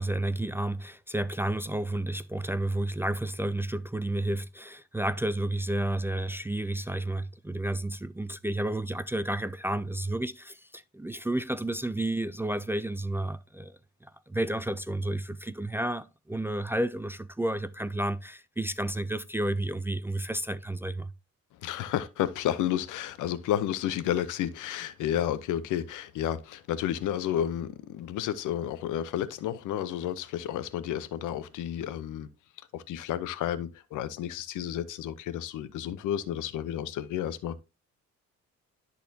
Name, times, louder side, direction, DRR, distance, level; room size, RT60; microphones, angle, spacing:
voice 1, 0.0-21.1, right 1 dB, 10° right, 0.3 m, -31 dB
voice 2, 21.6-32.3 32.7-37.6, left 11 dB, 85° left, 0.7 m, -31 dB
12.5 x 4.2 x 2.7 m
cardioid pair, 90°, 30 cm